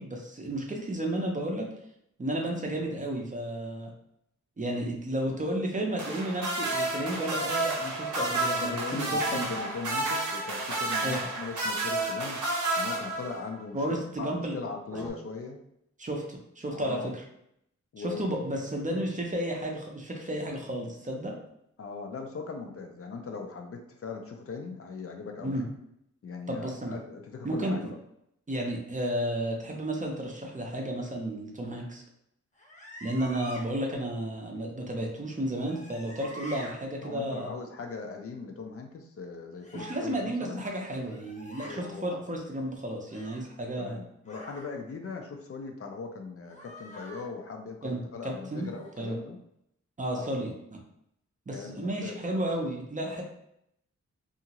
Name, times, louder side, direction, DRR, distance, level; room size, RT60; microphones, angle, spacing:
voice 1, 0.0-1.7 2.2-3.9 4.6-9.5 11.0-11.2 13.7-14.5 16.0-17.2 18.0-21.4 25.4-25.6 26.5-27.0 27.4-27.9 28.5-32.0 33.0-37.5 39.7-44.0 47.8-48.7 49.0-49.2 50.0-50.5 51.5-53.2, right 1 dB, 25° right, 0 dB, 0.5 m, -32 dB
sound 1, 6.0-13.6 14.9-15.1, right 2 dB, 90° right, 0.7 m, -30 dB
voice 2, 8.6-12.4 12.8-15.6 16.7-17.1 17.9-18.4 21.8-25.7 26.2-28.0 37.0-40.6 41.7-42.2 43.8-49.4 50.2-50.5 51.5-52.2, left 4 dB, 50° left, 3 dB, 0.4 m, -39 dB
sound 2, 32.5-33.6 35.3-36.7 39.6-40.1 40.9-41.8 43.1-43.5 44.3-44.7 46.5-47.3 48.5-49.0, equal, 25° left, 0.7 m, -46 dB
2.7 x 2.4 x 2.9 m, 0.77 s
wide cardioid pair, 145°, 29 cm